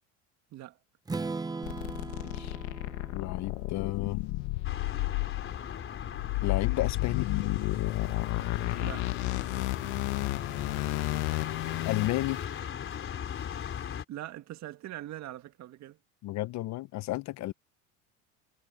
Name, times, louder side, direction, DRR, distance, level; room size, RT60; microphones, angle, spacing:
Strum, 1.1-5.0, right 3 dB, 10° right, 0.8 m, -40 dB
sound 1, 1.6-12.4, left 24 dB, 75° left, 1.0 m, -32 dB
voice 1, 2.2-2.5 3.1-4.2 6.4-7.3 11.8-12.4 16.2-17.5, left 16 dB, 50° left, 1.0 m, -32 dB
sound 2, 4.6-14.0, left 8 dB, 35° left, 3.9 m, -38 dB
voice 2, 14.1-16.0, right 14 dB, 50° right, 1.8 m, -42 dB
supercardioid pair, 110°, 35 cm